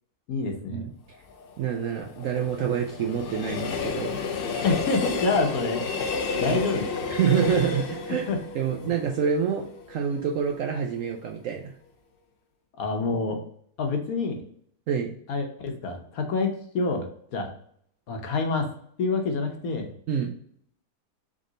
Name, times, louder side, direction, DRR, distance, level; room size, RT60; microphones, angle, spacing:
voice 1, 0.3-0.9 4.6-6.1 6.4-7.1 8.3-8.4 8.8-8.9 12.8-13.4 13.8-14.4 15.3-17.1 17.3-17.5 18.1-18.7 19.0-19.9, left 3 dB, 65° left, 3 dB, 1.2 m, -27 dB
Train, 1.1-10.2 10.6-10.7, left 5 dB, 80° left, 0.5 m, -31 dB
voice 2, 1.6-4.2 6.5-6.6 7.2-11.7 14.9-15.1 20.1-20.3, right 8 dB, 70° right, 2 dB, 0.8 m, -27 dB
3.7 x 3.6 x 3.8 m, 0.64 s
omnidirectional pair, 1.8 m